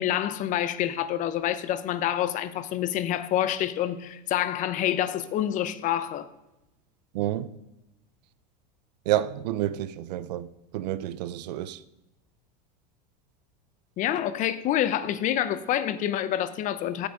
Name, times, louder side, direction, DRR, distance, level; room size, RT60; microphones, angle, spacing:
voice 1, 0.0-6.3 14.0-17.1, left 11 dB, 35° left, 0.7 m, -27 dB
voice 2, 7.1-7.5 9.1-10.5 10.7-11.8, right 13 dB, 80° right, 0.6 m, -29 dB
8.1 x 7.2 x 4.8 m
supercardioid pair, 130°, 21 cm